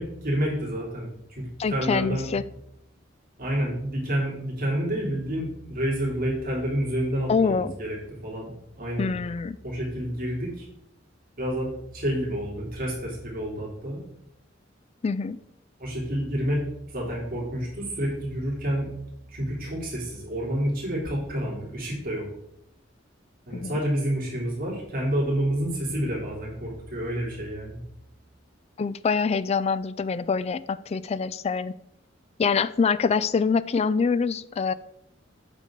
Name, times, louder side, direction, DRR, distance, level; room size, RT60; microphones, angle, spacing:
voice 1, 0.0-2.3 3.4-8.0 8.2-9.2 9.6-10.7 11.4-14.0 15.8-16.6 16.9-18.9 19.3-22.3 23.5-27.8, equal, 50° right, -4 dB, 2.9 m, -29 dB
voice 2, 1.6-2.4 7.3-7.7 9.0-9.6 15.0-15.4 23.5-23.8 28.8-31.7 32.4-34.7, left 5 dB, 35° left, 16 dB, 0.3 m, -25 dB
8.5 x 6.7 x 3.7 m, 0.78 s
head